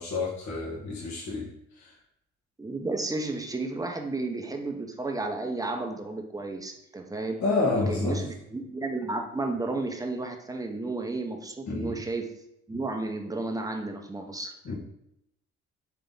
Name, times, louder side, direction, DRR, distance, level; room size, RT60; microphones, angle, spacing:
voice 1, 0.0-1.5 7.4-8.2 11.7-12.0 14.6-14.7, left 3 dB, 60° left, -5 dB, 1.3 m, -28 dB
voice 2, 2.6-7.4 7.9-12.3 12.7-14.7, right 2 dB, 10° right, 3 dB, 0.8 m, -32 dB
3.8 x 3.4 x 3.8 m, 0.80 s
hypercardioid pair, 55°, 32 cm